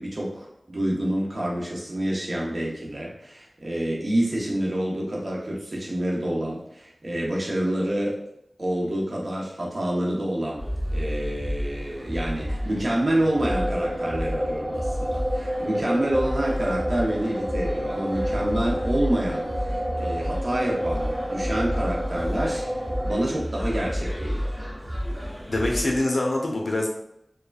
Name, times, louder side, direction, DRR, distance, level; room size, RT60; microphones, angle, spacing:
voice 1, 0.0-8.2 8.6-22.6 23.0-24.5, right 1 dB, 60° right, -4 dB, 0.8 m, -27 dB
sound 1, 10.6-26.0, equal, 5° right, 1.0 m, -31 dB
sound 2, 13.3-23.1, equal, 40° right, 0.4 m, -30 dB
voice 2, 25.5-26.9, left 1 dB, 70° left, -1 dB, 0.6 m, -24 dB
3.1 x 2.2 x 2.3 m, 0.78 s
wide cardioid pair, 40°, 0 cm